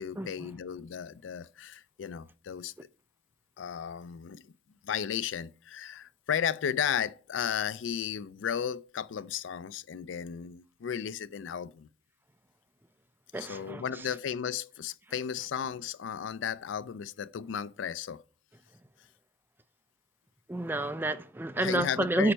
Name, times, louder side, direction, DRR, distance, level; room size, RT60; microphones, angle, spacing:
voice 1, 0.0-2.7 3.6-4.5 4.8-11.9 13.4-18.2 21.6-22.3, left 8 dB, 85° left, 0.4 m, -34 dB
voice 2, 13.3-14.1 20.5-22.3, right 1 dB, 10° right, 0.4 m, -30 dB
8.8 x 5.2 x 4.4 m
head